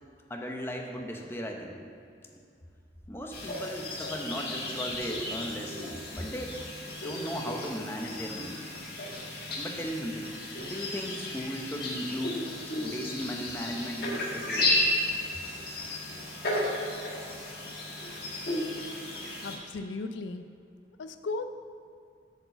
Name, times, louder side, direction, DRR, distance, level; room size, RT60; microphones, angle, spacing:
voice 1, 0.3-1.8 3.1-5.8 6.1-6.6 7.0-8.5 9.6-10.3 10.6-12.5 12.7-14.8, equal, 15° left, 1 dB, 0.7 m, -36 dB
sound 1, 3.3-19.6, left 1 dB, 55° left, 1.4 m, -34 dB
voice 2, 19.4-20.5 21.0-21.4, left 3 dB, 90° left, 9 dB, 0.4 m, -36 dB
8.0 x 4.4 x 6.8 m, 2.4 s
head